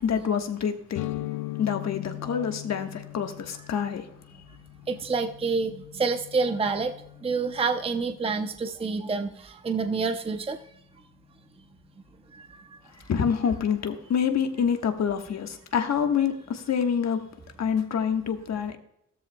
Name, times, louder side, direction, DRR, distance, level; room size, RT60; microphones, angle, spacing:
voice 1, 0.0-1.0 1.6-4.1 13.1-17.2 17.6-18.8, left 7 dB, 60° left, 5 dB, 1.4 m, -27 dB
sound 1, 0.9-8.6, left 19 dB, 80° left, 0.6 m, -40 dB
voice 2, 4.9-6.9 7.2-10.6, right 4 dB, 20° right, 7 dB, 0.6 m, -27 dB
14.5 x 13.5 x 2.2 m, 0.80 s
cardioid pair, 100°, 31 cm